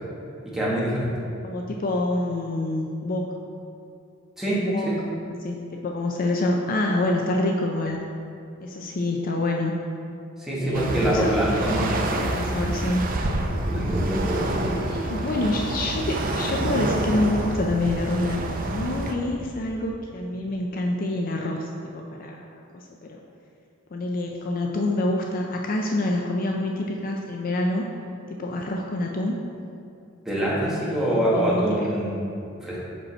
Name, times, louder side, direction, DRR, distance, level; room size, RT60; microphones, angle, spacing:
voice 1, 0.5-1.1 4.4-5.0 10.4-12.2 12.5-12.6 13.7-14.8 30.2-32.3 32.6-32.8, right 1 dB, ahead, -7 dB, 1.5 m, -25 dB
voice 2, 1.4-3.4 4.6-4.9 5.4-8.0 8.6-9.7 10.6-11.9 12.3-13.0 14.9-22.5 22.7-23.2 23.9-27.9 28.3-29.4 30.6-31.7, left 2 dB, 45° left, 1 dB, 0.4 m, -27 dB
sound 1, 10.7-19.1, right 1 dB, 45° right, 0.5 m, -28 dB
6.3 x 5.2 x 4.2 m, 2.6 s
head